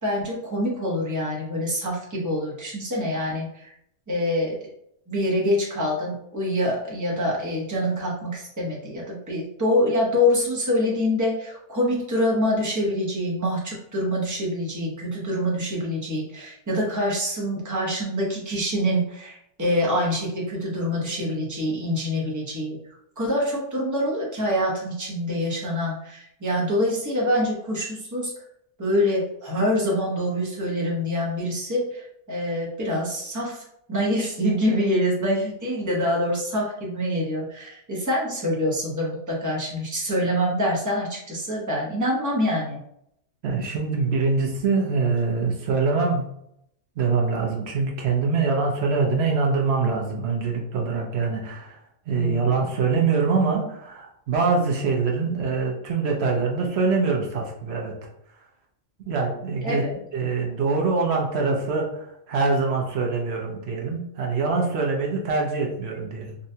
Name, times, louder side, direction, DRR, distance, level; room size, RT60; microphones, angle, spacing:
voice 1, 0.0-3.7 4.1-4.6 5.1-22.8 23.2-28.3 28.8-33.6 33.9-42.8 52.1-52.7 59.6-59.9, left 1 dB, 15° right, -4 dB, 0.8 m, -25 dB
voice 2, 43.4-46.3 47.0-51.8 52.1-57.9 59.1-59.8 60.1-66.4, right 4 dB, 60° right, 0 dB, 0.9 m, -24 dB
3.9 x 2.2 x 2.7 m, 0.74 s
omnidirectional pair, 1.3 m